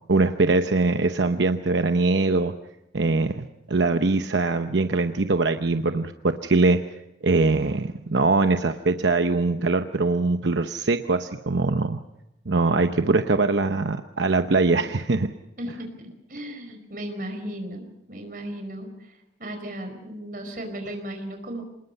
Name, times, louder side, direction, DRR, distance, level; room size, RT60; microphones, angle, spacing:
voice 1, 0.1-2.5 2.9-6.8 7.2-12.0 12.5-15.3, right 3 dB, 85° right, 7 dB, 0.8 m, -22 dB
voice 2, 15.6-21.6, right 1 dB, 50° right, 5 dB, 4.9 m, -36 dB
26.5 x 20.0 x 5.5 m, 0.88 s
head